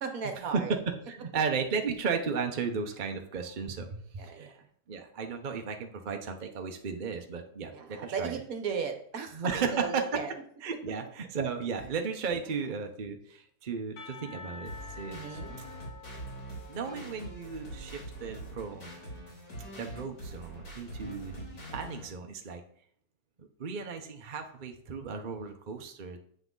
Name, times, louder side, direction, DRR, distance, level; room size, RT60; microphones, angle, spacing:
voice 1, 0.0-0.7 4.2-4.5 7.7-10.3 15.0-15.6, right 6 dB, 60° right, 6 dB, 1.3 m, -36 dB
voice 2, 0.5-4.6 4.9-8.4 9.3-10.2 10.6-15.7 16.7-18.9 19.8-22.6 23.4-26.2, right 5 dB, 40° right, 4 dB, 0.7 m, -35 dB
Percussion, 14.0-18.8, left 4 dB, 90° left, 1.8 m, -49 dB
sound 1, 14.7-22.1, right 1 dB, 60° left, 3.4 m, -43 dB
8.1 x 5.8 x 3.9 m, 0.62 s
omnidirectional pair, 1.8 m